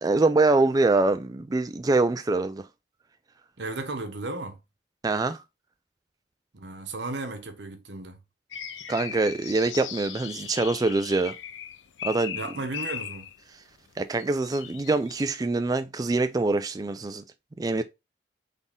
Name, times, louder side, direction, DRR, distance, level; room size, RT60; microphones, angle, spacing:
voice 1, 0.0-2.7 5.0-5.4 8.9-11.3 12.0-12.4 14.0-17.2 17.6-17.8, right 3 dB, 20° right, 0.3 m, -24 dB
voice 2, 3.6-4.6 6.5-8.2 12.3-13.3, right 2 dB, 65° right, 1.0 m, -34 dB
sound 1, 8.5-13.4 14.2-15.2, left 9 dB, 85° left, 0.5 m, -38 dB
4.1 x 3.6 x 3.6 m
head